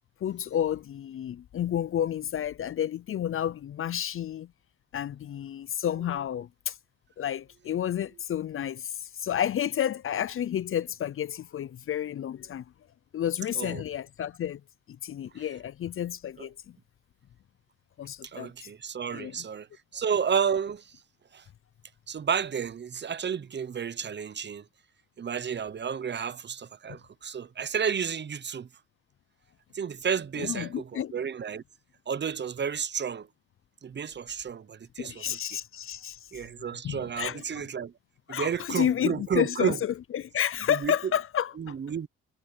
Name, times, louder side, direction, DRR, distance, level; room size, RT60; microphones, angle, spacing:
voice 1, 0.2-4.5 4.9-6.7 7.2-12.6 13.1-14.6 15.0-16.5 18.0-18.5 19.1-19.4 30.4-31.1 35.0-36.2 36.8-37.6 38.3-41.7, left 10 dB, 45° left, 0.5 m, -31 dB
voice 2, 18.2-19.7 19.9-20.9 21.3-21.4 22.1-24.6 25.2-28.7 29.7-31.6 32.1-33.3 33.8-35.6 36.3-37.9 38.3-39.8 40.7-40.9 41.6-42.1, right 7 dB, 35° right, 0.8 m, -31 dB
cardioid pair, 90°, 30 cm